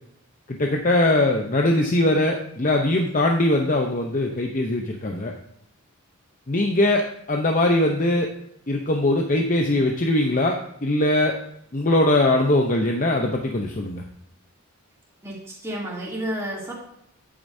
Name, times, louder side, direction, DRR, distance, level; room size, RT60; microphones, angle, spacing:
voice 1, 0.5-5.3 6.5-8.3 8.7-11.3 11.7-14.0, left 1 dB, 35° left, 2 dB, 0.7 m, -21 dB
voice 2, 15.2-16.7, right 1 dB, 15° right, -5 dB, 2.8 m, -31 dB
10.5 x 8.7 x 2.7 m, 0.74 s
head